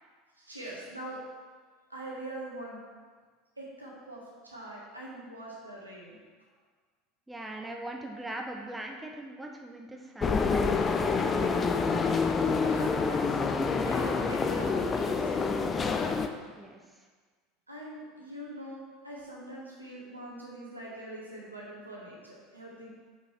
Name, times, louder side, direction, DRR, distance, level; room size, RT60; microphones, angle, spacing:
voice 1, 0.4-1.2 1.9-2.8 3.6-6.1 12.7-13.4 13.7-15.7 17.7-22.9, right 1 dB, 90° right, -5 dB, 1.4 m, -43 dB
voice 2, 7.3-10.8 16.6-17.1, right 1 dB, 10° right, 1 dB, 0.7 m, -41 dB
sound 1, 10.2-16.3, left 4 dB, 25° left, 0.4 m, -27 dB
6.4 x 5.4 x 3.3 m, 1.5 s
figure-of-eight pair, 75°, 0 cm